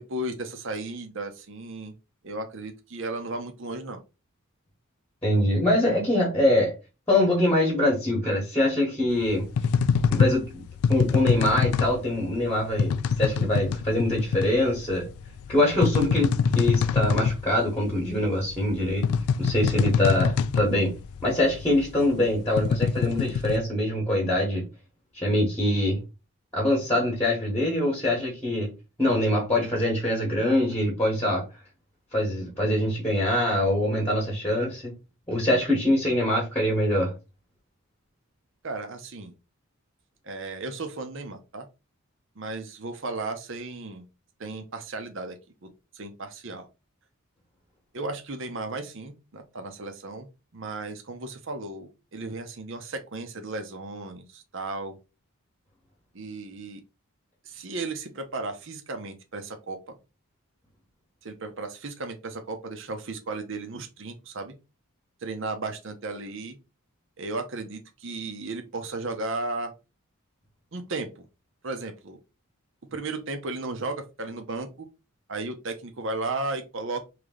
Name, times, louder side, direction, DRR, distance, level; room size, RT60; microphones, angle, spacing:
voice 1, 0.0-1.9 2.2-4.0 38.6-39.3 40.2-41.7 42.4-44.0 44.4-45.7 45.9-46.7 47.9-50.3 50.5-54.9 56.1-56.8 57.4-59.8 61.2-64.5 65.2-66.6 67.2-69.7 70.7-71.3 71.6-72.2 72.9-74.9 75.3-77.1, right 2 dB, 60° right, 6 dB, 0.8 m, -35 dB
voice 2, 5.2-6.7 7.1-9.5 10.1-10.6 10.9-15.1 15.5-19.1 19.4-20.9 21.2-24.6 25.1-26.0 26.5-28.7 29.0-31.4 32.1-34.9 35.3-37.1, left 1 dB, 10° left, -2 dB, 1.2 m, -24 dB
sound 1, 9.1-23.6, left 6 dB, 80° left, 0.3 m, -25 dB
3.3 x 2.9 x 3.7 m, 0.28 s
head